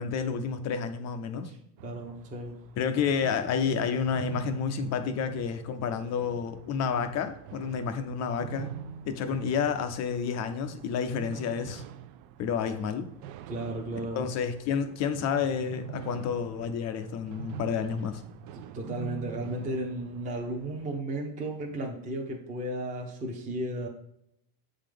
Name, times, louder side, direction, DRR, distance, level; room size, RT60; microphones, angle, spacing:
voice 1, 0.0-1.5 2.8-8.7 9.1-11.8 12.4-13.1 14.1-18.2, left 6 dB, 35° left, 8 dB, 0.4 m, -30 dB
voice 2, 1.4-2.6 13.4-14.3 18.5-23.9, right 1 dB, 15° right, 0 dB, 0.7 m, -34 dB
sound 1, 1.8-21.0, right 9 dB, 85° right, 0.7 m, -45 dB
8.3 x 3.8 x 5.0 m, 0.76 s
cardioid pair, 170°, 50 cm